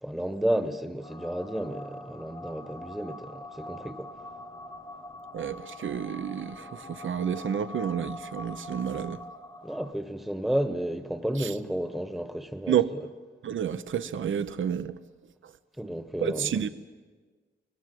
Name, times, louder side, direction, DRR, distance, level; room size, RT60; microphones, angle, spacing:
voice 1, 0.0-4.1 9.6-12.8 15.8-16.6, right 1 dB, ahead, 1.0 m, -32 dB
sound 1, 1.0-9.9, left 1 dB, 20° left, 1.0 m, -43 dB
voice 2, 5.3-9.2 11.4-11.5 12.7-12.9 13.4-15.0 16.2-16.7, right 8 dB, 80° right, 0.7 m, -30 dB
25.0 x 20.0 x 7.7 m
wide cardioid pair, 125°, 20 cm